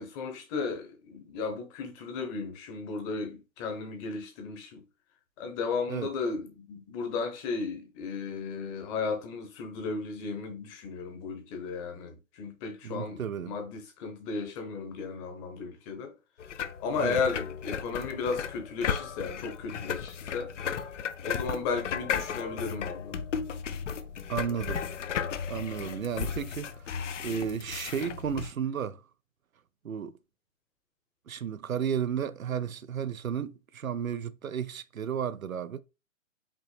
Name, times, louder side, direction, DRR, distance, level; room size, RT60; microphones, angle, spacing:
voice 1, 0.0-4.8 5.4-13.2 13.5-16.1 16.8-20.5 21.2-23.2 25.8-26.0, left 4 dB, 20° left, 0.9 m, -34 dB
voice 2, 12.8-13.5 17.0-17.2 24.3-24.8 25.5-29.0 29.8-30.1 31.3-35.8, right 7 dB, 90° right, 0.6 m, -33 dB
sound 1, 16.4-28.5, left 7 dB, 65° left, 0.7 m, -35 dB
5.3 x 2.9 x 3.3 m
figure-of-eight pair, 135°, 40 cm